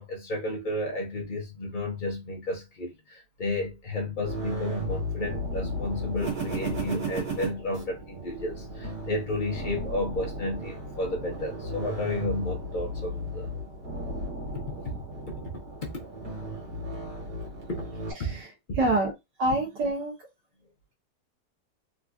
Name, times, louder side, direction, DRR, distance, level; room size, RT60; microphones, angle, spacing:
voice 1, 0.0-13.5 14.8-16.1 17.7-17.9 18.2-18.4 18.7-18.8, left 2 dB, 90° left, 0.4 m, -32 dB
sound 1, 4.2-18.1, right 1 dB, 60° right, 1.8 m, -35 dB
voice 2, 18.2-19.1 19.4-20.1, right 2 dB, 80° right, 1.4 m, -27 dB
3.7 x 2.3 x 2.4 m
omnidirectional pair, 1.9 m